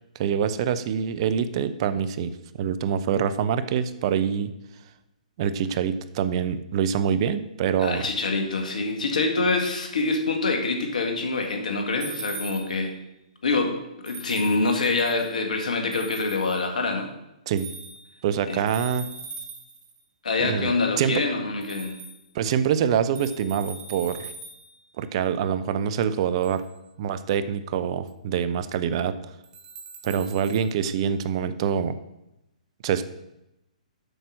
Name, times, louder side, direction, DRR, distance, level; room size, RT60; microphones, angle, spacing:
voice 1, 0.2-4.5 5.4-8.0 17.5-17.7 18.2-19.1 20.4-21.2 22.3-24.3 25.0-26.6 27.0-29.3 30.0-32.0 32.8-33.0, right 8 dB, 45° right, 12 dB, 0.7 m, -25 dB
voice 2, 7.8-13.0 13.4-13.8 14.0-17.1 18.5-18.6 20.2-22.0, left 3 dB, 70° left, 4 dB, 1.9 m, -25 dB
sound 1, 12.0-12.9 14.0-15.3 15.9-16.6 17.6-18.2 18.7-20.0 21.6-22.2 23.1-24.8 26.4-26.7 28.1-28.2 29.4-30.7, right 4 dB, 25° right, 1.2 m, -41 dB
8.0 x 5.9 x 6.3 m, 0.90 s
hypercardioid pair, 130°, 4 cm